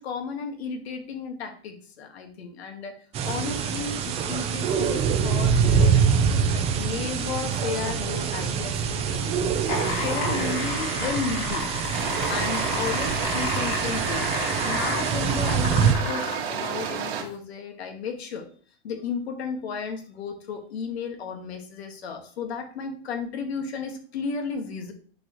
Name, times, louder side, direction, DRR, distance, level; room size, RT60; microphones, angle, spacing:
voice 1, 0.0-6.2 6.5-9.5 9.9-11.7 12.3-14.3 14.6-18.5 18.8-24.9, left 5 dB, 80° left, 4 dB, 1.9 m, -33 dB
sound 1, 3.1-15.9, right 6 dB, 20° right, 0.6 m, -25 dB
sound 2, 9.5-16.5 17.3-17.4, left 3 dB, 60° left, 3.9 m, -31 dB
sound 3, 11.9-17.2, right 7 dB, 80° right, 2.0 m, -31 dB
10.5 x 4.5 x 3.2 m, 0.43 s
supercardioid pair, 155°, 31 cm